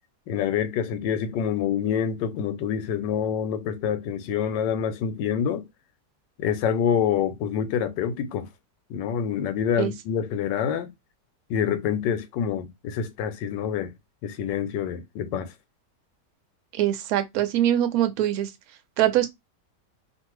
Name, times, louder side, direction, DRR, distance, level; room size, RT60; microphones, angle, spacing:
voice 1, 0.3-5.7 6.4-8.5 8.9-10.9 11.5-13.9 14.2-15.5, left 8 dB, 90° left, 1.2 m, -26 dB
voice 2, 16.7-18.5 19.0-19.3, right 12 dB, 70° right, 1.0 m, -23 dB
2.7 x 2.5 x 3.0 m
omnidirectional pair, 1.9 m